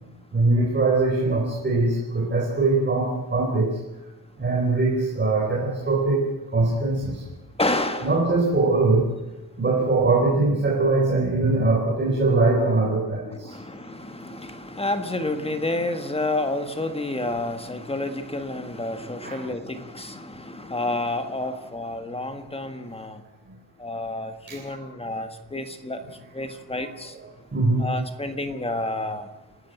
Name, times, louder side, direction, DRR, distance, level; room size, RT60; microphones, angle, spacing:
voice 1, 0.3-3.8 4.4-7.2 8.0-9.1 9.6-13.6 19.2-19.4 20.0-20.1 21.4-21.5 24.5-24.8 26.8-26.9 27.5-27.9, right 3 dB, 25° right, -2 dB, 4.1 m, -22 dB
voice 2, 7.6-8.1 13.3-23.2 23.8-26.0 26.3-27.2 27.8-29.3, left 2 dB, 15° left, 8 dB, 1.6 m, -29 dB
28.0 x 13.0 x 9.3 m, 1.0 s
wide cardioid pair, 160°, 41 cm